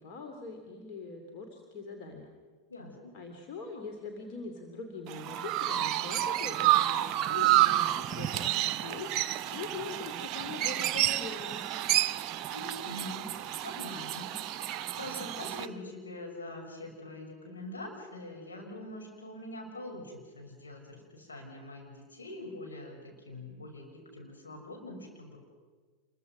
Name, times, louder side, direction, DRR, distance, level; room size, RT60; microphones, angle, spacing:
voice 1, 0.0-2.3 3.1-11.7, left 4 dB, 45° left, 3 dB, 2.9 m, -42 dB
voice 2, 2.7-3.2 12.5-13.3 13.6-25.4, left 1 dB, 75° left, 0 dB, 6.0 m, -44 dB
Chirp tweet, 5.1-15.7, right 13 dB, 40° right, 0.7 m, -30 dB
27.5 x 22.5 x 6.2 m, 1.5 s
figure-of-eight pair, 85°, 0 cm